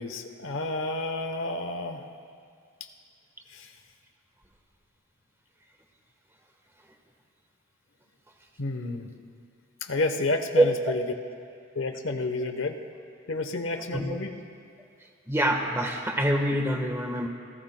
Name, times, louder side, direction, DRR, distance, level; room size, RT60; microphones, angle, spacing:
voice 1, 0.0-2.0 3.5-3.7 8.6-9.1 9.8-11.0 11.7-12.8 13.3-14.3, left 2 dB, 70° left, 6 dB, 0.9 m, -30 dB
voice 2, 15.3-17.3, right 1 dB, 15° right, 2 dB, 1.2 m, -25 dB
27.5 x 16.0 x 2.2 m, 2.2 s
head